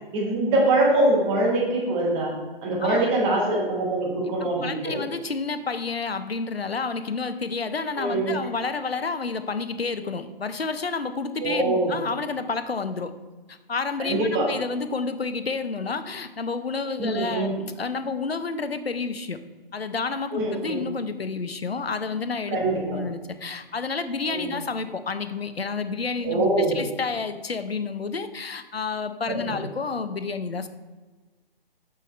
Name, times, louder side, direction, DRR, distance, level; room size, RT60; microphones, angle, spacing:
voice 1, 0.1-2.3 2.6-5.0 8.0-8.3 11.4-11.9 14.0-14.5 17.0-17.5 20.3-20.8 22.5-23.0 24.2-24.5 26.2-26.8 29.3-29.4, right 2 dB, 15° right, -3 dB, 1.3 m, -23 dB
voice 2, 4.4-13.1 13.5-19.4 19.7-30.7, left 4 dB, 85° left, 11 dB, 0.7 m, -30 dB
6.3 x 5.3 x 4.2 m, 1.3 s
figure-of-eight pair, 140°, 30 cm